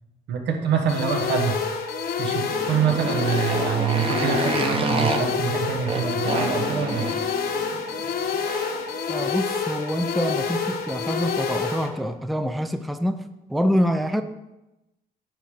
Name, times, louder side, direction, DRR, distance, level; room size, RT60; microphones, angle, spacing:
voice 1, 0.3-1.6 2.2-7.1, right 7 dB, 75° right, 3 dB, 1.5 m, -25 dB
sound 1, 0.9-11.9, left 5 dB, 60° left, 1.2 m, -28 dB
Motorcycle, 2.3-8.9, right 2 dB, 30° right, 1.2 m, -29 dB
voice 2, 9.1-13.2 13.5-14.2, equal, ahead, 9 dB, 0.5 m, -25 dB
9.0 x 3.6 x 6.7 m, 0.96 s
cardioid pair, 85°, 18 cm